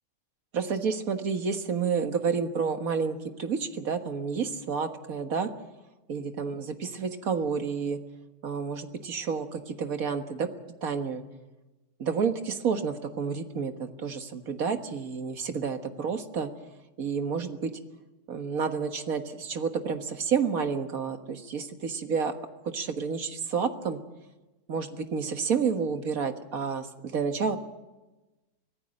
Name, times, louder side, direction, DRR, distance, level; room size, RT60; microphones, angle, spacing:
voice 1, 0.5-5.5 6.1-8.0 8.4-10.5 10.8-11.2 12.0-16.5 17.0-17.7 18.3-22.3 22.7-24.0 24.7-27.6, right 6 dB, 65° right, 7 dB, 1.9 m, -30 dB
24.5 x 16.0 x 8.9 m, 1.1 s
omnidirectional pair, 1.6 m